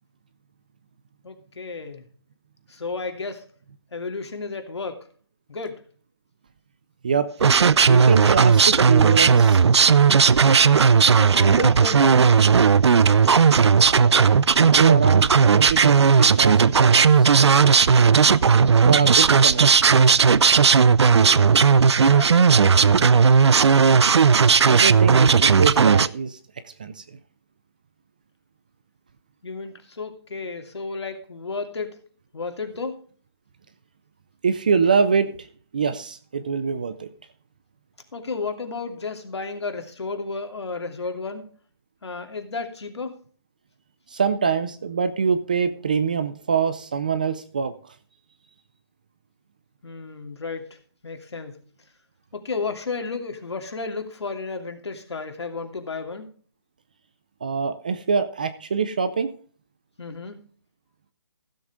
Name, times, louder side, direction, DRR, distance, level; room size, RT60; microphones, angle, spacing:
voice 1, 1.2-2.1 2.7-3.4 3.9-5.1 5.5-5.8 11.1-12.6 21.1-23.6 29.4-32.0 32.3-33.0 38.1-41.5 42.0-43.2 49.8-50.8 51.0-51.7 52.3-56.3 60.0-60.4, left 4 dB, 75° left, 5 dB, 2.7 m, -33 dB
sound 1, 7.4-26.1, right 6 dB, 75° right, 0.6 m, -16 dB
voice 2, 7.9-9.6 13.8-17.3 18.9-20.0 24.7-26.4 26.8-27.0 34.4-35.5 35.7-37.1 44.1-47.7 57.4-59.3, right 6 dB, 20° right, 12 dB, 0.4 m, -24 dB
15.5 x 7.7 x 3.6 m, 0.43 s
hypercardioid pair, 170°, 14 cm